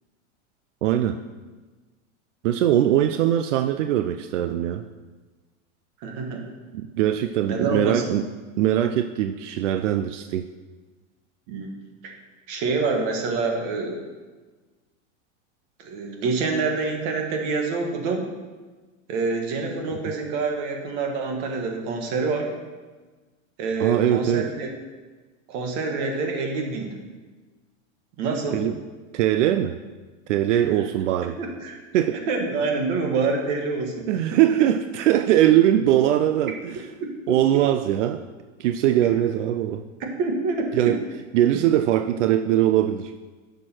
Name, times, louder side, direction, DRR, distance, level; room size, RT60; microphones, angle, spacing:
voice 1, 0.8-1.2 2.4-4.8 6.7-8.2 8.6-10.4 20.1-20.2 23.8-24.5 28.5-28.8 29.1-29.8 30.3-31.4 31.9-32.2 34.0-36.9 37.3-38.2 38.6-39.9 40.7-41.0 41.3-43.1, right 12 dB, 75° right, 8 dB, 0.6 m, -21 dB
voice 2, 6.0-6.5 7.4-8.0 11.5-11.7 12.0-12.1 12.5-14.0 15.8-18.3 19.1-22.5 23.6-24.7 25.5-27.0 28.2-28.6 30.5-30.6 31.4-31.8 32.1-34.4 37.0-37.4 40.2-41.0, right 4 dB, 40° right, 3 dB, 1.6 m, -26 dB
10.5 x 6.8 x 4.5 m, 1.3 s
supercardioid pair, 170°, 36 cm